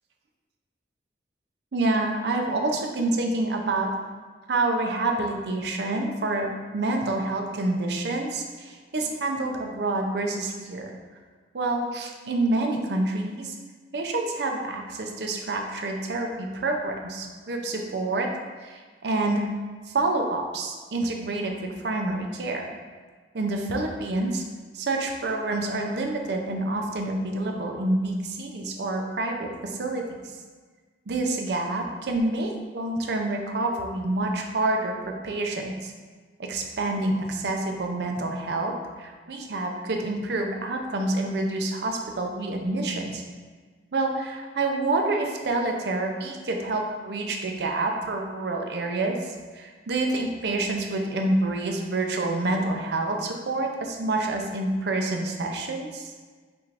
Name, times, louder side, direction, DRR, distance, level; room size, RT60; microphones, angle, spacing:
voice 1, 1.7-3.9 4.5-10.9 11.5-13.5 13.9-18.3 18.6-19.5 19.9-22.7 23.3-24.4 24.7-30.1 31.1-35.9 36.4-43.2 43.9-56.1, right 2 dB, 65° right, 3 dB, 0.5 m, -27 dB
5.8 x 2.5 x 3.3 m, 1.5 s
head